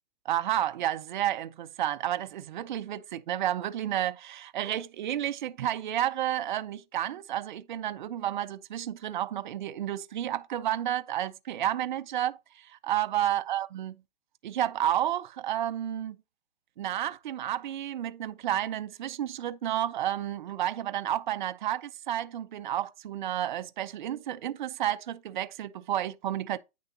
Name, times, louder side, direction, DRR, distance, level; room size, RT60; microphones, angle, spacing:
voice 1, 0.3-13.9 14.4-16.2 16.8-26.6, right 12 dB, 50° right, 0.6 m, -31 dB
9.0 x 6.2 x 2.8 m
hypercardioid pair, 165°, 31 cm